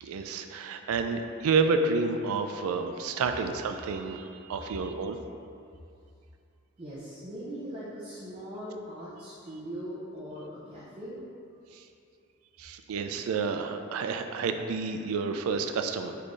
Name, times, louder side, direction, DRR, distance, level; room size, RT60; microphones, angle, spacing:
voice 1, 0.0-5.2 11.8-11.9 12.6-16.2, right 4 dB, 90° right, 7 dB, 0.3 m, -30 dB
voice 2, 6.8-11.2, equal, 25° right, -9 dB, 0.5 m, -40 dB
5.3 x 3.2 x 2.5 m, 2.5 s
head